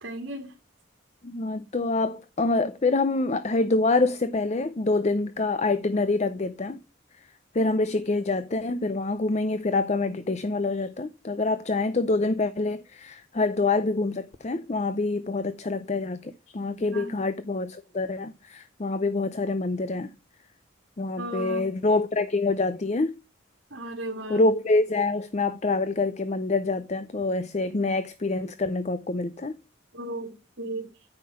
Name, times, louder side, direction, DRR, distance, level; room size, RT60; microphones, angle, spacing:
voice 1, 0.0-0.5 16.8-17.2 21.2-21.7 23.7-24.4 27.7-27.8 29.9-30.9, right 1 dB, 70° right, 2.1 m, -35 dB
voice 2, 1.2-6.8 7.5-20.1 21.0-23.1 24.3-29.5, left 3 dB, 35° left, 0.5 m, -26 dB
9.3 x 5.9 x 5.0 m
head